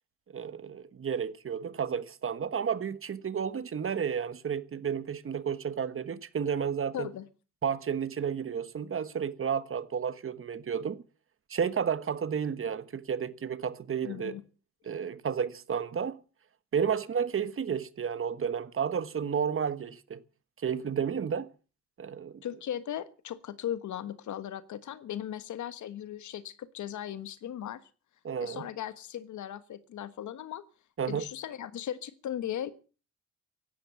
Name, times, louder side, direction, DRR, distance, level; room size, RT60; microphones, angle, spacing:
voice 1, 0.3-7.1 7.6-11.0 11.5-14.3 14.8-16.2 16.7-20.2 20.6-21.5 22.0-22.4 28.2-28.7 31.0-31.2, right 7 dB, 45° right, 1.3 m, -32 dB
voice 2, 6.9-7.3 14.0-14.4 22.4-27.8 28.4-30.6 31.0-32.7, left 10 dB, 75° left, 1.4 m, -37 dB
15.5 x 11.5 x 6.9 m
cardioid pair, 75°, 30 cm